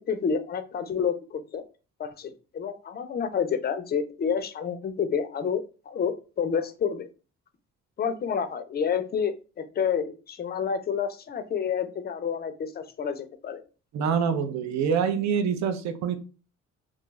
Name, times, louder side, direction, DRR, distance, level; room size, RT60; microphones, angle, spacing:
voice 1, 0.1-1.6 2.0-7.1 8.0-9.3 9.8-13.6, left 7 dB, 35° left, 10 dB, 0.4 m, -29 dB
voice 2, 13.9-16.2, right 7 dB, 65° right, 7 dB, 0.5 m, -25 dB
2.4 x 2.3 x 3.0 m, 0.35 s
cardioid pair, 90°, 30 cm